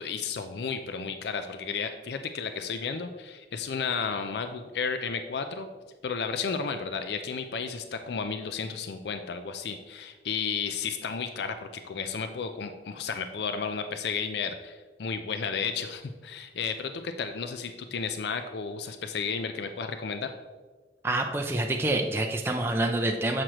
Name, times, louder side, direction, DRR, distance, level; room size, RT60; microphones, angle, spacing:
voice 1, 0.0-5.7 6.0-20.3, left 5 dB, 65° left, 7 dB, 0.4 m, -33 dB
voice 2, 21.0-23.4, right 2 dB, 15° right, 2 dB, 0.4 m, -27 dB
7.5 x 6.3 x 2.9 m, 1.4 s
head